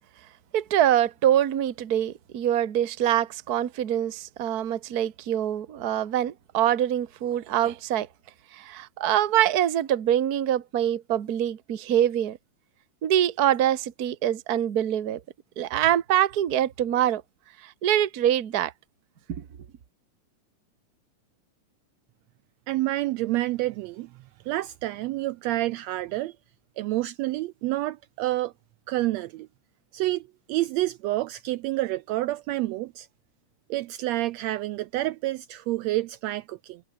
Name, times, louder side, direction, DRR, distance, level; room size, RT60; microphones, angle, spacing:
voice 1, 0.5-8.1 8.5-12.4 13.0-15.2 15.6-17.2 17.6-18.7 19.4-19.5, right 11 dB, 50° right, 1.1 m, -24 dB
voice 2, 22.7-24.1 24.4-26.3 26.8-28.5 28.9-29.5 29.9-33.1 33.7-36.8, right 17 dB, 85° right, 1.5 m, -28 dB
omnidirectional pair, 3.6 m